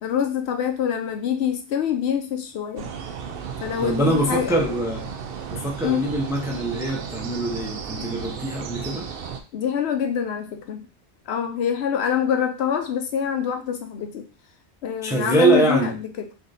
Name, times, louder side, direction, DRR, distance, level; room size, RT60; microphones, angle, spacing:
voice 1, 0.0-2.9 3.6-4.8 5.8-6.0 9.5-10.9 11.3-14.3 14.8-16.3, left 8 dB, 75° left, 6 dB, 0.9 m, -25 dB
sound 1, 2.8-9.4, right 6 dB, 65° right, 0.7 m, -34 dB
voice 2, 3.8-5.1 5.5-9.1 15.0-16.0, right 2 dB, 5° right, 1 dB, 0.4 m, -23 dB
3.5 x 2.7 x 3.9 m, 0.33 s
omnidirectional pair, 1.1 m